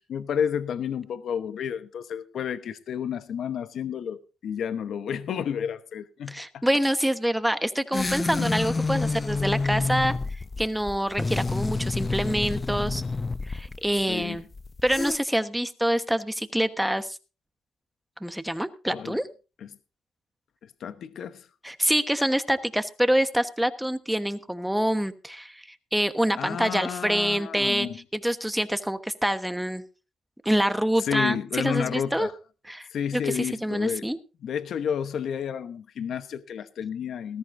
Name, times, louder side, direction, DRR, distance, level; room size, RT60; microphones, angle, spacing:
voice 1, 0.0-6.7 8.4-8.5 14.1-14.4 18.9-19.2 20.6-21.5 26.4-28.0 31.0-32.3 32.9-34.1 34.4-37.4, left 8 dB, 65° left, 1.0 m, -31 dB
voice 2, 6.3-13.0 13.4-14.4 14.8-17.2 18.2-19.3 21.6-27.9 28.1-29.8 30.4-32.3 32.7-34.2, equal, 5° right, 1.2 m, -26 dB
sound 1, 7.9-15.2, left 3 dB, 25° left, 0.5 m, -28 dB
19.5 x 14.0 x 2.6 m
cardioid pair, 90°, 0 cm